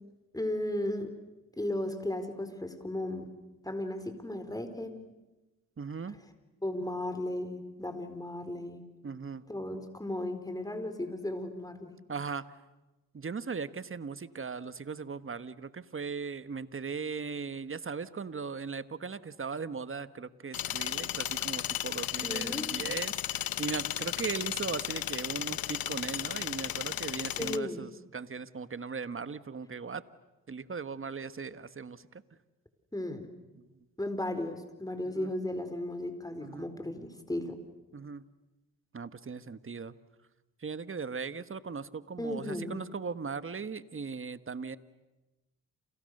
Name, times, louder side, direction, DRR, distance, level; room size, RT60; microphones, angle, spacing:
voice 1, 0.3-1.1 1.6-3.3 3.6-5.0 6.6-8.8 9.5-11.9 22.2-22.7 27.3-27.8 32.9-33.3 34.0-37.6 42.2-42.8, left 1 dB, 10° left, 8 dB, 4.5 m, -35 dB
voice 2, 5.8-6.2 9.0-9.4 12.1-12.4 13.1-30.0 30.5-32.2 33.6-33.7 35.0-35.3 36.4-36.7 37.9-38.2 38.9-39.9 40.6-44.8, right 5 dB, 35° right, 13 dB, 1.4 m, -38 dB
sound 1, 20.5-27.6, left 12 dB, 65° left, 0.9 m, -34 dB
30.0 x 29.0 x 6.7 m, 1.1 s
cardioid pair, 60°, 37 cm